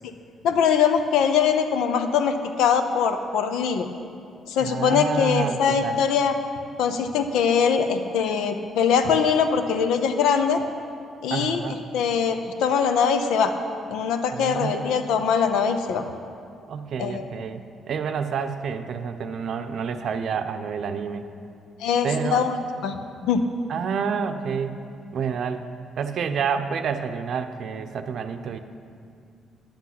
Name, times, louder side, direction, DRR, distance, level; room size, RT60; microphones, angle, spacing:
voice 1, 0.4-3.9 4.5-6.3 6.8-10.6 11.2-13.5 13.9-16.0 17.0-17.3 21.8-22.6 22.8-23.4, left 7 dB, 90° left, 8 dB, 0.7 m, -22 dB
voice 2, 4.6-6.1 11.3-11.8 14.3-15.2 16.7-17.6 17.9-21.3 22.0-22.4 23.7-24.8 25.1-25.6 26.0-28.6, right 6 dB, 65° right, 8 dB, 0.6 m, -29 dB
10.5 x 8.3 x 5.9 m, 2.4 s
cardioid pair, 100°, 0 cm